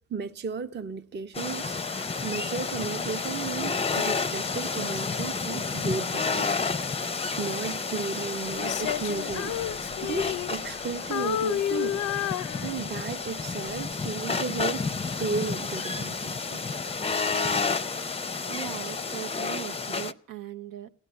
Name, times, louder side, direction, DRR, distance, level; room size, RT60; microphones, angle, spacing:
voice 1, 0.1-12.0 12.6-16.6, right 4 dB, 35° right, 0.6 m, -34 dB
sound 1, 1.3-20.1, left 4 dB, 20° left, 0.5 m, -31 dB
Female singing, 8.6-10.9 11.1-13.2 13.7-13.9, left 11 dB, 70° left, 0.5 m, -31 dB
voice 2, 18.4-20.9, right 12 dB, 85° right, 0.7 m, -39 dB
16.5 x 9.9 x 6.9 m
cardioid pair, 70°, 32 cm